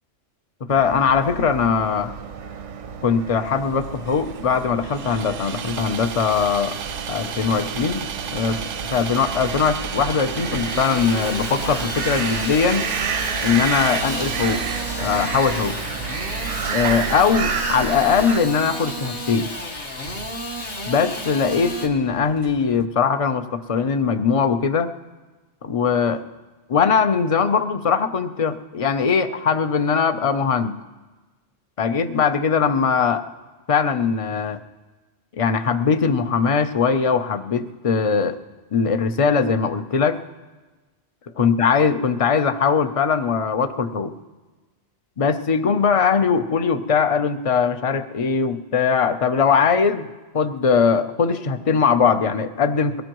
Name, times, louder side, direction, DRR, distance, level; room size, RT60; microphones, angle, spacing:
voice 1, 0.7-2.1 3.0-6.8 7.1-8.6 8.9-12.9 13.4-14.6 15.0-15.8 16.7-19.5 20.8-24.9 25.6-26.2 26.7-30.8 31.8-33.2 33.7-34.6 35.3-38.4 38.7-40.2 41.4-44.1 45.2-50.1 50.3-53.0, left 6 dB, 35° left, 10 dB, 0.6 m, -20 dB
sound 1, 0.7-18.4, right 6 dB, 85° right, 1.2 m, -31 dB
Sawing, 3.5-22.8, right 7 dB, 55° right, 0.7 m, -35 dB
Engine starting / Sawing, 6.1-21.9, left 1 dB, 55° left, 1.7 m, -33 dB
22.5 x 18.0 x 3.0 m, 1.2 s
omnidirectional pair, 1.2 m